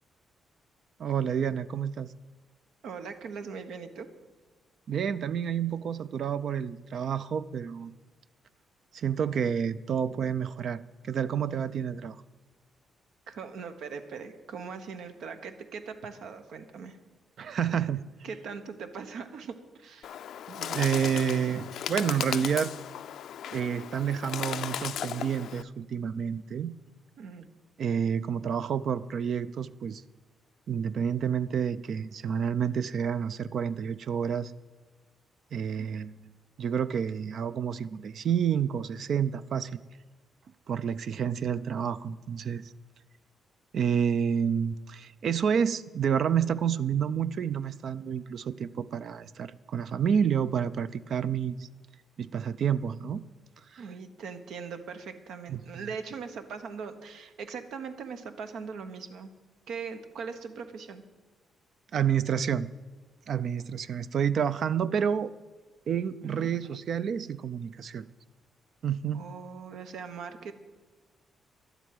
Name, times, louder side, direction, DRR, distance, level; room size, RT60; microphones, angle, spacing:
voice 1, 1.0-2.1 4.9-7.9 8.9-12.2 17.4-18.0 20.5-22.7 23.5-26.7 27.8-30.0 30.7-34.5 35.5-36.1 36.6-39.8 40.7-42.7 43.7-51.7 52.2-53.2 53.7-53.8 55.5-55.6 61.9-62.7 63.3-65.3 65.9-68.0 68.8-69.2, right 8 dB, 55° right, 15 dB, 0.5 m, -29 dB
voice 2, 2.8-4.1 13.3-17.0 18.2-20.2 27.2-27.5 35.7-36.0 53.8-59.3 59.7-61.0 66.2-66.5 69.1-70.5, right 5 dB, 80° right, 8 dB, 1.2 m, -40 dB
Bird, 20.0-25.6, left 9 dB, 70° left, 0.4 m, -36 dB
11.5 x 8.1 x 9.2 m, 1.3 s
cardioid pair, 130°, 0 cm